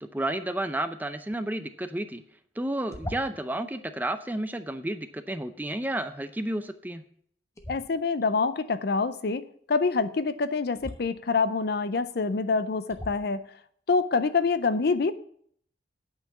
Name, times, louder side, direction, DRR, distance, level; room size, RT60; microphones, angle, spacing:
voice 1, 0.0-2.2 2.6-7.0, right 1 dB, 10° right, 10 dB, 0.5 m, -31 dB
sound 1, 2.9-3.6 7.6-8.2 10.7-11.0 11.9-12.0 12.9-13.4, equal, 15° left, 1.0 m, -39 dB
voice 2, 7.7-9.4 9.7-13.4 13.9-15.1, left 4 dB, 55° left, 14 dB, 0.5 m, -26 dB
9.0 x 5.6 x 7.0 m, 0.63 s
head